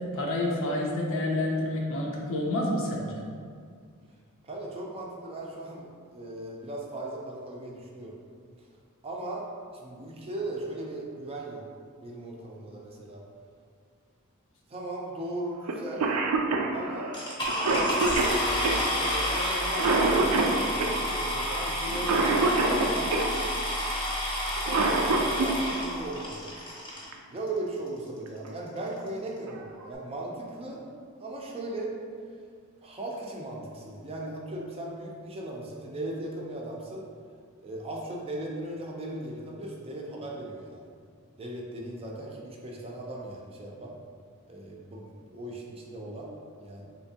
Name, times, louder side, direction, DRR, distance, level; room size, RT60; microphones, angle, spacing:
voice 1, 0.1-3.2, left 1 dB, 60° left, -2 dB, 0.6 m, -28 dB
voice 2, 4.4-5.9 6.1-8.2 9.0-9.5 9.8-11.6 12.0-13.2 14.7-16.1 16.7-17.1 17.7-22.2 22.6-23.2 24.6-26.6 27.3-30.8 31.2-31.9 32.8-37.0 37.6-40.9 41.4-44.0 44.5-46.3 46.6-46.8, right 2 dB, 25° right, -2 dB, 0.4 m, -37 dB
Cough, 15.7-15.8 16.0-23.3 24.4-25.5 27.1-27.2 28.3-28.5 29.0-29.1 29.5-29.9, right 3 dB, 85° right, 0.4 m, -26 dB
sound 1, 17.1-27.1 27.9-28.0 28.5-28.6 28.8-29.1, left 1 dB, 20° left, 0.7 m, -30 dB
3.4 x 2.8 x 2.7 m, 2.1 s
head